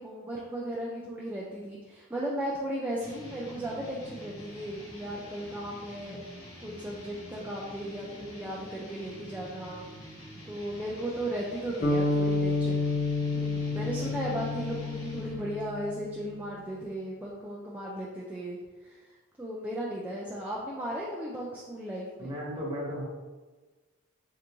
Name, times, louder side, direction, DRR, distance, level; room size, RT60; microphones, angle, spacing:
voice 1, 0.0-6.2 6.6-10.1 10.5-12.9 13.3-22.3, right 1 dB, 10° right, -5 dB, 0.3 m, -36 dB
sound 1, 3.0-15.5, equal, 85° left, 1.1 m, -47 dB
sound 2, 11.8-16.1, left 3 dB, 40° left, 0.5 m, -29 dB
voice 2, 13.7-14.1 22.2-23.0, equal, 25° right, -6 dB, 1.0 m, -36 dB
3.4 x 2.5 x 3.0 m, 1.3 s
head